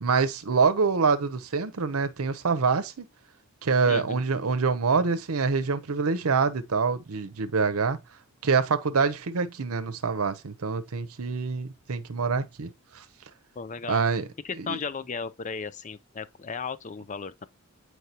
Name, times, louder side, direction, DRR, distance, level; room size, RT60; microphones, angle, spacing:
voice 1, 0.0-3.1 3.6-8.0 8.4-12.7 12.9-13.0 13.9-14.3 14.6-14.8, right 5 dB, 85° right, 0.7 m, -25 dB
voice 2, 3.9-4.2 13.6-14.0 14.4-17.5, left 5 dB, 35° left, 0.4 m, -35 dB
8.1 x 4.7 x 2.8 m
head